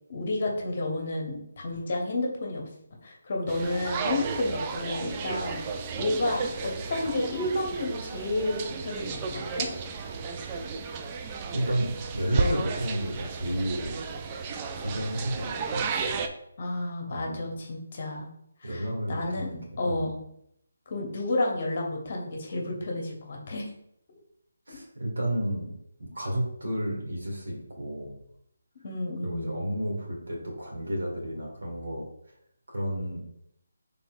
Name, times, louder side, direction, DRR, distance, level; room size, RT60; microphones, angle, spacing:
voice 1, 0.1-2.6 3.0-5.6 6.0-9.7 16.6-18.3 18.6-18.8 19.1-20.1 20.9-23.7 24.7-24.8 28.8-29.5, left 2 dB, 45° left, 0 dB, 0.9 m, -31 dB
sound 1, 3.5-16.3, right 5 dB, 25° right, 0.3 m, -33 dB
voice 2, 11.5-14.1 14.7-15.8 17.1-17.6 18.6-20.1 24.7-25.7 26.0-28.1 29.2-32.0 32.7-33.2, right 1 dB, 75° right, -1 dB, 1.6 m, -31 dB
4.3 x 3.6 x 2.4 m, 0.74 s
figure-of-eight pair, 155°, 0 cm